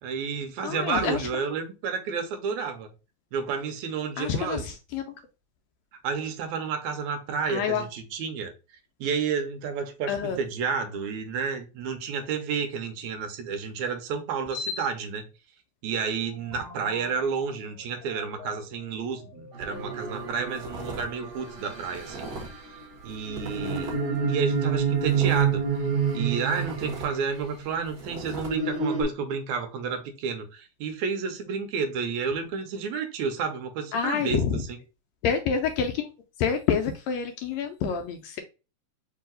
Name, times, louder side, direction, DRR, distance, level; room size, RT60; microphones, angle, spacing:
voice 1, 0.0-2.9 3.3-4.6 6.0-8.5 9.0-15.3 15.8-22.3 22.7-24.0 24.3-25.6 26.1-34.8, right 6 dB, 80° right, 2.0 m, -31 dB
voice 2, 0.6-1.2 4.2-4.6 4.9-5.0 7.5-7.8 10.1-10.4 14.5-14.8 33.9-34.6 35.2-36.1 36.4-38.4, left 7 dB, 80° left, 1.6 m, -27 dB
sound 1, 16.1-21.5, equal, 55° left, 1.1 m, -47 dB
sound 2, 19.5-27.4 28.0-29.0, right 6 dB, 60° right, 2.0 m, -29 dB
sound 3, 19.6-19.8 20.2-21.1 21.3-22.6 23.0-24.2 24.5-26.2 26.5-28.5, right 2 dB, 40° right, 1.7 m, -40 dB
4.6 x 2.7 x 3.7 m
omnidirectional pair, 3.5 m